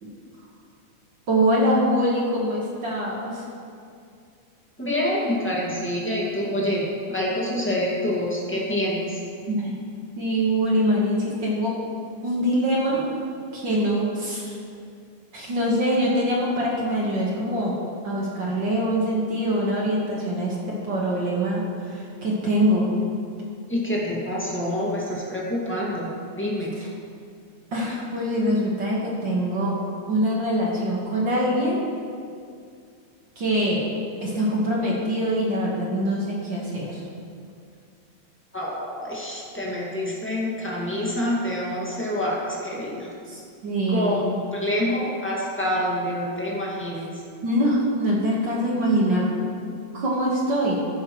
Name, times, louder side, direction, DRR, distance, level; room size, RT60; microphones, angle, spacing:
voice 1, 1.3-3.4 9.5-9.8 10.2-11.8 12.2-13.1 13.5-14.6 15.3-17.8 18.0-23.0 26.8-26.9 27.7-29.8 30.1-31.9 33.4-33.8 34.2-37.0 43.3-44.3 47.4-49.3 49.9-50.9, equal, 45° right, -4 dB, 1.8 m, -24 dB
voice 2, 4.8-9.2 23.7-26.7 38.5-43.1 43.9-47.1, left 1 dB, 5° left, -5 dB, 1.3 m, -27 dB
14.5 x 10.5 x 3.1 m, 2.4 s
omnidirectional pair, 3.4 m